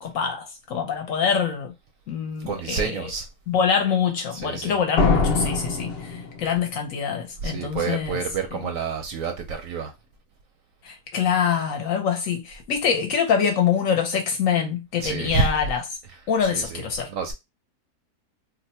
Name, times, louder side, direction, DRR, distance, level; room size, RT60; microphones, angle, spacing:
voice 1, 0.0-1.7 2.1-3.1 3.5-5.9 6.4-8.2 10.8-15.8 16.3-17.1, left 7 dB, 65° left, 0.9 m, -24 dB
voice 2, 2.5-3.3 4.3-4.8 7.4-9.9 15.0-15.5 16.5-16.8 17.1-17.3, right 5 dB, 70° right, 0.8 m, -28 dB
sound 1, 5.0-6.8, left 4 dB, 80° left, 0.5 m, -23 dB
2.7 x 2.1 x 4.1 m
omnidirectional pair, 1.7 m